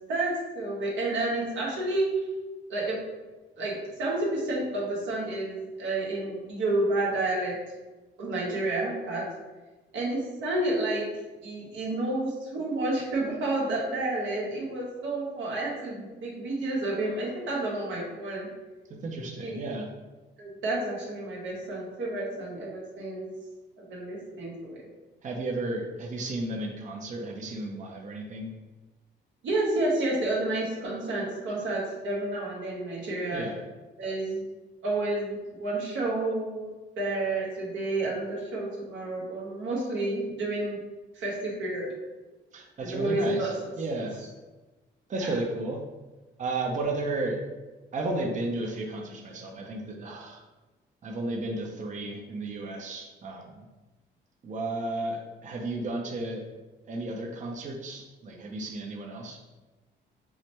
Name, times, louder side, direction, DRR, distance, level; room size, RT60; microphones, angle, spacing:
voice 1, 0.1-2.1 2.7-3.0 3.6-7.6 8.2-9.2 9.9-11.1 11.4-18.5 19.4-19.6 20.4-23.3 23.8-24.8 29.4-33.5 34.0-34.4 34.8-40.8 41.1-41.9 42.8-43.5 44.0-44.1 45.2-45.3, right 2 dB, 80° right, -3 dB, 1.2 m, -30 dB
voice 2, 19.0-19.9 25.2-28.5 33.3-33.6 42.5-44.2 45.1-45.8 46.4-47.4 47.9-50.4 51.0-53.7 54.4-56.4 56.9-59.4, right 2 dB, 40° right, 0 dB, 0.6 m, -33 dB
4.8 x 2.1 x 3.0 m, 1.2 s
cardioid pair, 90°, 20 cm